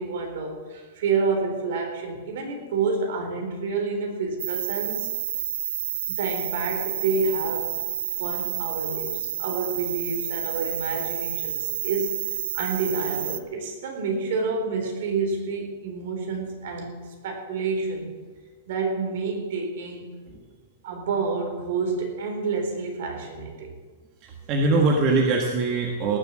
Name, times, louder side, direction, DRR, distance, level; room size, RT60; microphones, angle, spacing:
voice 1, 0.0-5.1 6.1-7.7 8.2-12.2 12.5-18.1 18.7-20.1 20.8-23.7, right 4 dB, 60° right, 2 dB, 4.2 m, -29 dB
sound 1, 4.4-13.4, right 10 dB, 75° right, 0.9 m, -30 dB
voice 2, 24.2-26.2, right 3 dB, 30° right, 1 dB, 1.5 m, -22 dB
18.5 x 7.6 x 7.6 m, 1.4 s
supercardioid pair, 165°, 0 cm